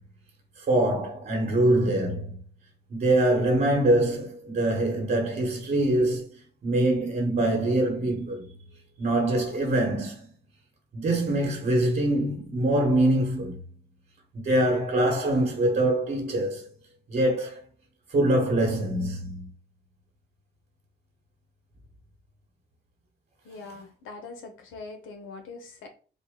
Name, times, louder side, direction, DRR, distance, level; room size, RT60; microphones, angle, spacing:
voice 1, 0.6-2.4 2.9-8.5 9.0-10.3 10.9-13.6 14.3-16.7 17.1-17.6 18.1-19.5, right 1 dB, 45° right, 1.4 m, -24 dB
voice 2, 23.4-25.9, left 3 dB, 85° left, 1.1 m, -42 dB
4.0 x 2.4 x 3.8 m
cardioid pair, 90°, 20 cm